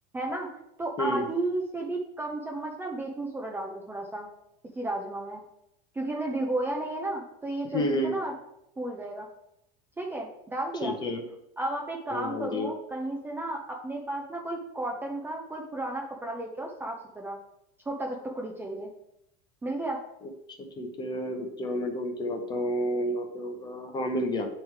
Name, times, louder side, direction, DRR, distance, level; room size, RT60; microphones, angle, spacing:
voice 1, 0.1-0.5 0.8-4.3 4.7-5.4 5.9-8.3 8.8-9.3 10.0-10.9 11.6-17.4 17.9-18.9 19.6-20.0, right 2 dB, 10° right, 0 dB, 0.7 m, -33 dB
voice 2, 7.7-8.1 10.8-11.2 12.1-12.7 20.8-24.5, equal, 20° left, 4 dB, 0.9 m, -30 dB
9.2 x 3.3 x 4.7 m, 0.81 s
supercardioid pair, 145°, 20 cm